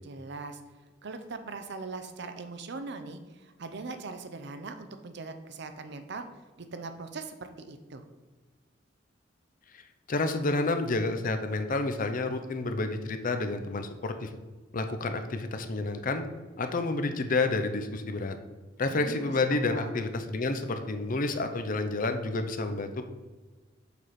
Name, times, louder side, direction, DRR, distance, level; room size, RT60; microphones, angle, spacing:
voice 1, 0.0-0.6 1.0-6.3 6.6-8.0 18.9-20.0, right 3 dB, 65° right, 8 dB, 0.6 m, -41 dB
voice 2, 10.1-14.3 14.7-16.2 16.6-18.4 18.8-23.0, left 3 dB, 45° left, 7 dB, 0.6 m, -29 dB
6.9 x 4.7 x 4.3 m, 1.3 s
head